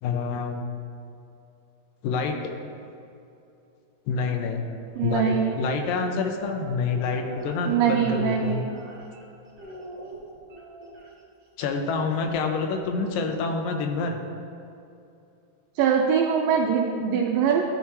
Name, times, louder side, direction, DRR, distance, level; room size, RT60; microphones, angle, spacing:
voice 1, 0.0-0.6 2.0-2.4 4.1-4.7 5.0-8.6 11.6-14.2, left 4 dB, 80° left, 3 dB, 2.3 m, -27 dB
sound 1, 4.9-5.5 6.3-9.2 9.6-11.1 12.3-13.6, right 1 dB, 40° right, 1.2 m, -42 dB
voice 2, 5.0-5.5 7.7-8.7 15.8-17.6, right 7 dB, 80° right, 0 dB, 2.2 m, -23 dB
13.0 x 5.7 x 3.1 m, 2.7 s
omnidirectional pair, 4.2 m